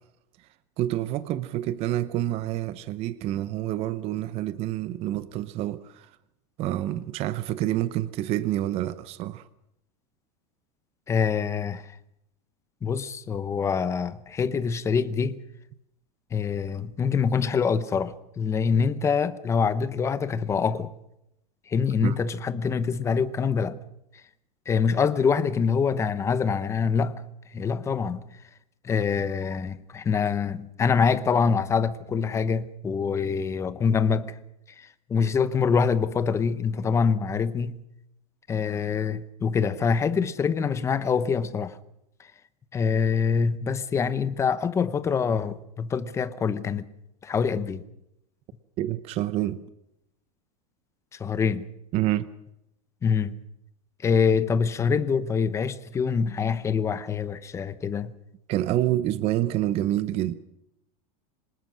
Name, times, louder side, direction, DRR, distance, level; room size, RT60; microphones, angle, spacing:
voice 1, 0.8-6.1 6.6-9.5 22.0-22.2 48.8-49.6 51.9-52.3 58.5-60.3, right 13 dB, 30° right, 0.8 m, -27 dB
voice 2, 11.1-11.9 12.8-15.4 16.3-20.9 21.7-23.8 24.7-27.2 27.5-28.2 28.8-34.4 34.8-37.7 38.5-41.8 42.7-46.9 47.2-47.8 51.1-51.7 53.0-53.4 54.0-58.1, left 6 dB, 15° left, 0.8 m, -25 dB
26.0 x 19.0 x 6.2 m
supercardioid pair, 165°, 20 cm